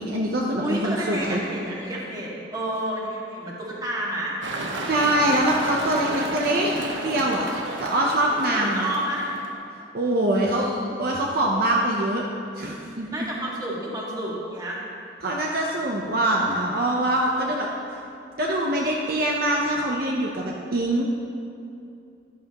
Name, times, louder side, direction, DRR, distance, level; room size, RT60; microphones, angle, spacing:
voice 1, 0.0-1.4 4.9-7.4 7.8-8.9 9.9-10.6 11.0-12.2 12.6-13.3 15.2-17.7 18.4-21.0, right 1 dB, 50° right, -2 dB, 0.8 m, -24 dB
voice 2, 0.6-4.4 8.5-9.3 10.5-11.0 13.1-14.8, right 1 dB, 20° right, -4 dB, 1.8 m, -30 dB
sound 1, 4.4-9.5, right 2 dB, 80° right, 1.1 m, -32 dB
12.0 x 11.5 x 3.0 m, 2.6 s
head